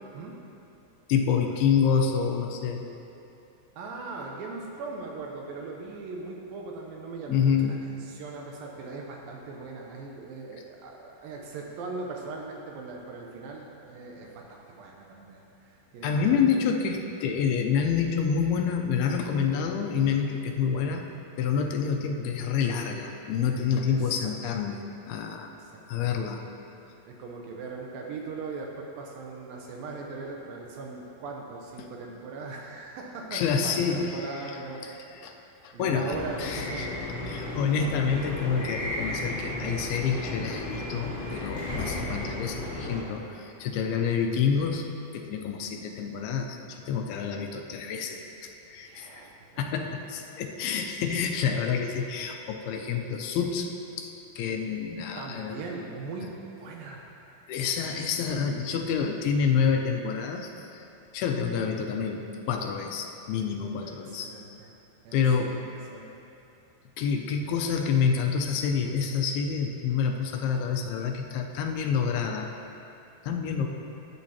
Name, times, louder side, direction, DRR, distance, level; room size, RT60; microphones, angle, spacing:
voice 1, 1.1-2.8 7.3-7.9 16.0-21.0 21.4-24.8 25.1-25.5 25.9-26.4 31.8-31.9 33.3-34.6 34.8-34.9 35.2-35.3 35.6-36.9 37.2-44.9 45.1-48.2 48.7-49.1 49.6-53.7 54.0-55.6 57.5-60.8 61.1-64.3 65.1-65.6 67.0-72.5 73.3-73.7, left 6 dB, 85° left, 3 dB, 2.5 m, -28 dB
voice 2, 3.8-16.6 23.8-24.3 25.5-26.1 27.1-35.0 35.7-37.0 48.9-49.3 49.8-50.1 55.2-57.0 63.8-64.7 65.0-65.7 65.9-66.1, right 3 dB, 80° right, 0 dB, 2.3 m, -40 dB
sound 1, 36.1-43.0, left 1 dB, 20° left, 1.2 m, -34 dB
13.5 x 8.0 x 2.8 m, 2.8 s
omnidirectional pair, 4.5 m